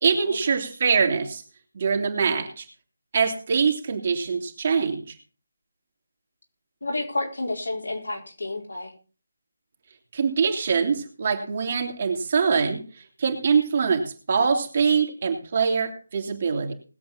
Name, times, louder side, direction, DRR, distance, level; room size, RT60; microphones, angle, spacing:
voice 1, 0.0-1.4 1.7-2.7 3.1-5.0 10.1-12.8 13.2-16.7, right 5 dB, 40° right, 3 dB, 2.7 m, -23 dB
voice 2, 6.8-8.9, left 2 dB, 70° left, 0 dB, 4.4 m, -30 dB
20.5 x 7.8 x 4.2 m, 0.35 s
figure-of-eight pair, 155°, 0 cm